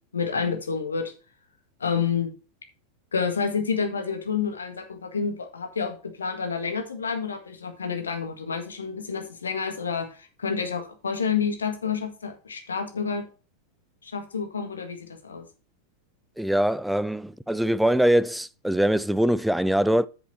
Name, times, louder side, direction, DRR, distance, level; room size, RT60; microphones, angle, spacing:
voice 1, 0.1-1.1 1.8-2.3 3.1-13.2 14.0-15.5, left 6 dB, 70° left, 1.8 m, -29 dB
voice 2, 16.4-20.1, right 1 dB, ahead, 0.4 m, -23 dB
8.4 x 7.0 x 4.3 m
figure-of-eight pair, 90°, 0 cm